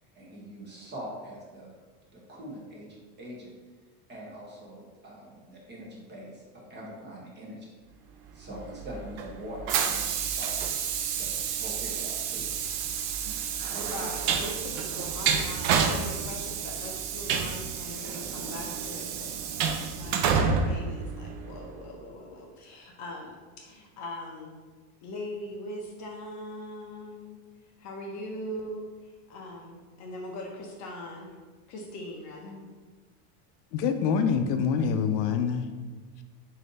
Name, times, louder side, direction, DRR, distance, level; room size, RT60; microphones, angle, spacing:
voice 1, 0.1-1.7 2.1-3.5 4.1-7.7 8.3-10.5 11.1-12.5 13.7-14.0, equal, 20° right, -4 dB, 1.0 m, -43 dB
Train, 8.5-21.7, right 6 dB, 60° right, 0.5 m, -30 dB
voice 2, 13.9-19.3 19.9-24.6 25.0-27.4 27.8-31.3 31.7-32.7, left 1 dB, 35° left, -1 dB, 0.5 m, -41 dB
voice 3, 33.7-35.7, left 6 dB, 80° left, 7 dB, 0.5 m, -25 dB
3.2 x 2.7 x 3.9 m, 1.4 s
supercardioid pair, 130°, 49 cm